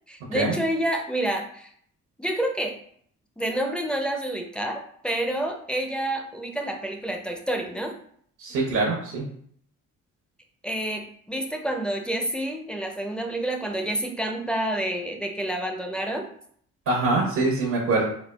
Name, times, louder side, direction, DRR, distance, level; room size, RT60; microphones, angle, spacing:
voice 1, 0.1-1.7 2.2-2.8 3.4-7.9 10.6-16.3, right 1 dB, 5° left, 3 dB, 0.4 m, -28 dB
voice 2, 8.4-9.2 16.9-18.0, right 3 dB, 85° right, -2 dB, 0.9 m, -24 dB
4.2 x 2.2 x 2.2 m, 0.63 s
cardioid pair, 90°, 30 cm